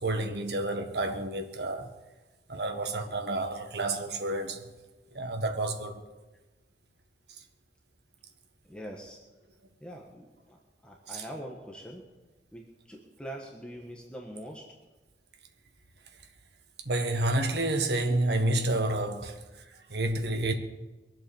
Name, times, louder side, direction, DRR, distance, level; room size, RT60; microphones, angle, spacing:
voice 1, 0.0-1.9 2.5-4.6 5.1-6.0 11.1-11.3 16.8-20.5, right 2 dB, 65° right, 1.6 m, -30 dB
voice 2, 8.7-9.2 9.8-12.0 12.5-14.7, equal, 5° left, 1.5 m, -43 dB
22.5 x 7.9 x 7.1 m
head